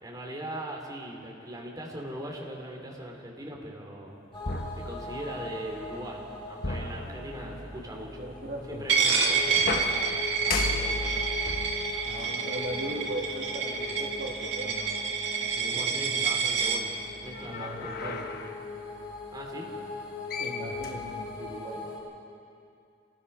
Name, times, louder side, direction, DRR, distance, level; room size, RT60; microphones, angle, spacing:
voice 1, 0.0-4.2 4.7-8.2 8.7-10.2 10.4-11.3 15.6-18.1 19.3-19.7, right 1 dB, 20° right, -1 dB, 2.9 m, -40 dB
sound 1, 4.3-22.0, left 3 dB, 30° left, 6.4 m, -41 dB
sound 2, 4.5-5.6 6.6-7.8 9.6-13.2 14.0-14.1 17.3-18.6 20.0-20.1 20.3-21.6, left 3 dB, 55° left, 1.3 m, -36 dB
voice 2, 6.8-7.7 8.2-8.8 9.2-9.3 12.0-15.0 15.4-16.0 17.4-18.2 20.4-21.9, right 1 dB, 55° right, -1 dB, 2.6 m, -39 dB
Coin (dropping), 8.9-16.8, right 5 dB, 75° right, 2.1 m, -28 dB
27.5 x 19.5 x 5.5 m, 2.5 s
head